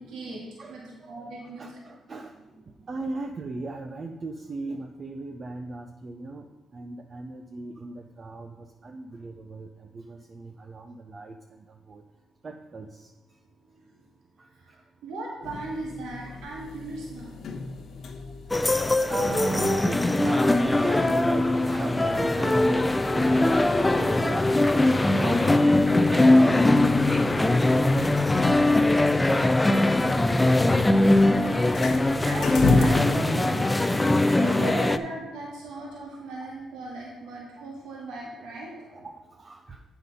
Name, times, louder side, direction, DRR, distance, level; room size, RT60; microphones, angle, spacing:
voice 1, 0.0-1.8 14.5-17.3 31.4-31.7 32.2-33.8 34.6-39.1, right 2 dB, 85° right, -3 dB, 1.8 m, -37 dB
voice 2, 0.6-2.4 2.9-12.0 12.4-13.1 14.4-14.8 16.3-16.4 18.2-28.2 33.8-34.8 36.1-36.2 38.9-39.8, right 3 dB, 40° right, 5 dB, 0.5 m, -38 dB
sound 1, 15.4-32.9, left 3 dB, 60° left, 1.0 m, -35 dB
sound 2, 18.5-35.0, left 2 dB, 15° left, 0.4 m, -21 dB
8.3 x 5.8 x 5.3 m, 1.1 s
cardioid pair, 90°, 0 cm